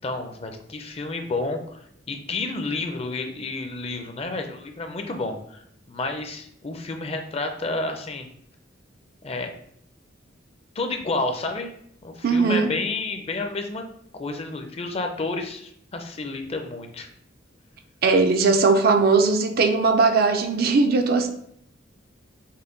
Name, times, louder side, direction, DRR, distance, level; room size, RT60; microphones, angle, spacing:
voice 1, 0.0-8.3 9.2-9.5 10.8-11.7 12.0-13.9 14.1-17.1, left 3 dB, 30° left, 5 dB, 0.5 m, -30 dB
voice 2, 12.2-12.7 18.0-21.3, right 4 dB, 50° right, 6 dB, 0.4 m, -19 dB
5.6 x 2.2 x 3.8 m, 0.69 s
head